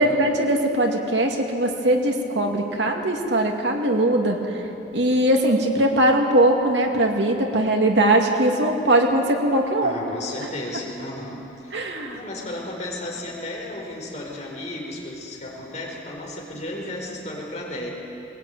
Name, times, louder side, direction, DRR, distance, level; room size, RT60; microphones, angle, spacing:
voice 1, 0.0-4.4 4.9-10.0 11.7-12.2, right 1 dB, 80° right, 2 dB, 2.4 m, -20 dB
voice 2, 9.8-17.9, left 1 dB, 40° left, -2 dB, 4.8 m, -34 dB
21.5 x 20.0 x 9.2 m, 3.0 s
head